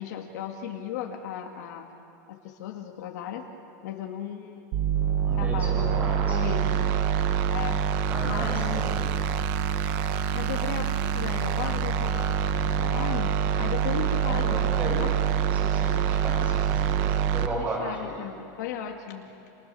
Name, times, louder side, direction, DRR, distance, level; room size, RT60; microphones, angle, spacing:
voice 1, 0.0-1.9 2.3-3.5 3.8-6.9 7.5-7.8 8.2-9.1 10.3-15.2 17.6-19.3, left 9 dB, 65° left, 2 dB, 2.3 m, -36 dB
sound 1, 4.7-17.5, right 8 dB, 40° right, 1.0 m, -25 dB
voice 2, 5.3-6.6 8.1-9.1 14.3-15.0 15.5-18.1, right 2 dB, 15° right, -2 dB, 6.2 m, -35 dB
29.0 x 28.0 x 7.1 m, 2.9 s
supercardioid pair, 175°, 10 cm